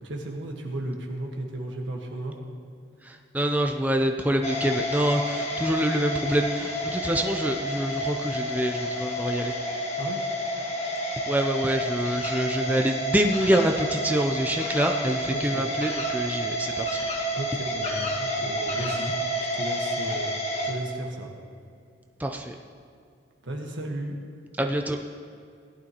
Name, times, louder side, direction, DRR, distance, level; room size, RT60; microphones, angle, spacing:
voice 1, 0.0-2.4 10.0-10.2 15.3-15.7 17.3-19.1 19.4-20.3 20.6-21.3 23.4-24.1, right 1 dB, 70° right, 1 dB, 1.5 m, -34 dB
voice 2, 3.0-9.6 11.3-17.0 22.2-22.6 24.6-25.0, right 1 dB, 10° right, 3 dB, 0.5 m, -26 dB
sound 1, 4.4-20.7, equal, 35° left, 1.4 m, -30 dB
17.0 x 11.5 x 3.0 m, 2.3 s
head